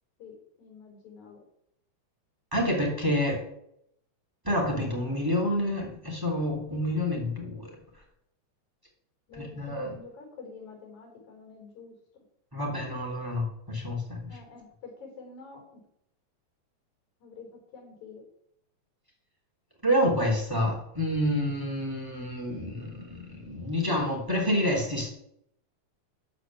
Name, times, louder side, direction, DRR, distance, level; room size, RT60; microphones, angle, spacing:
voice 1, 0.2-1.4 9.3-12.2 14.3-15.8 17.2-17.5 17.7-18.2, left 4 dB, 75° left, 0 dB, 6.0 m, -47 dB
voice 2, 2.5-3.4 4.4-7.7 9.3-9.9 12.5-14.3 19.8-25.1, equal, 5° right, -1 dB, 2.9 m, -28 dB
13.0 x 5.1 x 7.6 m, 0.76 s
omnidirectional pair, 3.4 m